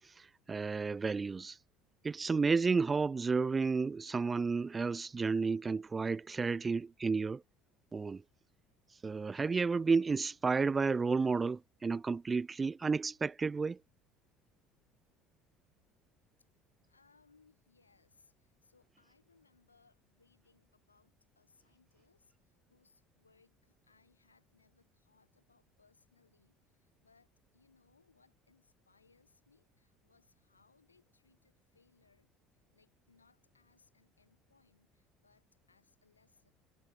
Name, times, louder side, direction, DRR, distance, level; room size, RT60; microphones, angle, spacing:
voice 1, 0.5-1.6 2.0-7.4 7.9-8.2 9.0-13.8, right 4 dB, 25° right, 0.4 m, -31 dB
voice 2, 16.9-36.5, left 4 dB, 85° left, 4.4 m, -70 dB
figure-of-eight pair, 60°, 0 cm